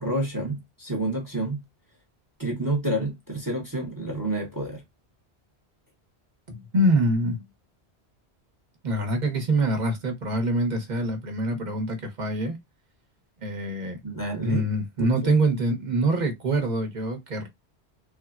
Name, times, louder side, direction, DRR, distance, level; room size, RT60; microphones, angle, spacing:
voice 1, 0.0-1.6 2.4-4.8 14.0-14.7 15.0-15.3, right 2 dB, 20° right, 0.6 m, -29 dB
voice 2, 6.5-7.4 8.8-12.6 13.4-14.0 14.4-17.5, right 1 dB, 45° right, 0.9 m, -25 dB
3.3 x 2.0 x 2.3 m
omnidirectional pair, 1.1 m